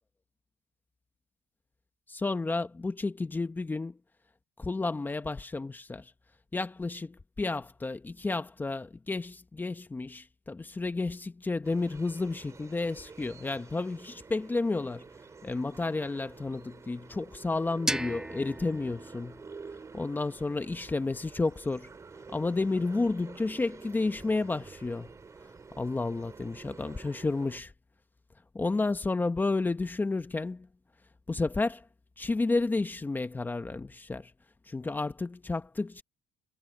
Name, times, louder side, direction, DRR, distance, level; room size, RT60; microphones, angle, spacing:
voice 1, 2.1-4.0 4.6-6.1 6.5-15.1 15.4-19.4 19.9-21.9 22.3-25.1 25.8-27.7 28.5-30.7 31.3-31.8 32.2-34.3 34.7-36.0, left 3 dB, 15° left, 1.1 m, -31 dB
sound 1, 11.6-27.6, right 4 dB, 25° right, 2.9 m, -49 dB
sound 2, 17.9-20.7, right 1 dB, 5° right, 1.3 m, -37 dB
cardioid pair, 115°, 12 cm